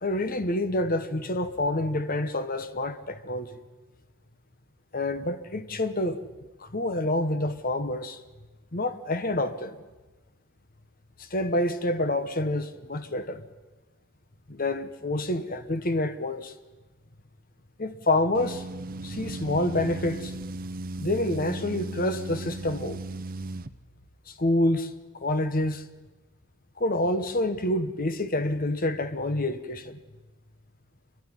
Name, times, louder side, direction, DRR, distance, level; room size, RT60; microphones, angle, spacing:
voice 1, 0.0-3.6 4.9-6.2 6.6-8.2 8.7-9.8 11.2-13.4 14.5-16.5 17.8-18.6 19.0-20.4 21.0-23.0 24.3-25.8 26.8-30.0, left 1 dB, 40° left, 1.2 m, -27 dB
sound 1, 18.3-23.7, right 2 dB, 40° right, 0.7 m, -36 dB
27.5 x 12.0 x 9.9 m
head